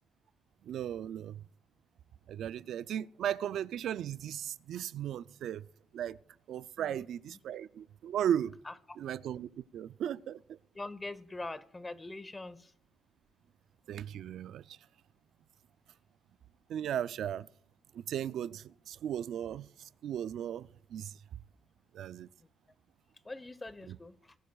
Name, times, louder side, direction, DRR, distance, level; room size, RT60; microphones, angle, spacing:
voice 1, 0.6-1.4 2.3-5.6 5.9-6.2 6.5-8.6 9.0-10.6 13.9-14.8 16.7-17.5 17.9-21.1 21.9-22.3 23.9-24.0, right 10 dB, 75° right, 0.4 m, -36 dB
voice 2, 6.8-7.4 8.6-9.0 10.7-12.7 22.4-22.5 23.2-24.4, left 2 dB, 20° left, 0.9 m, -44 dB
20.0 x 11.0 x 2.3 m
cardioid pair, 90°, 0 cm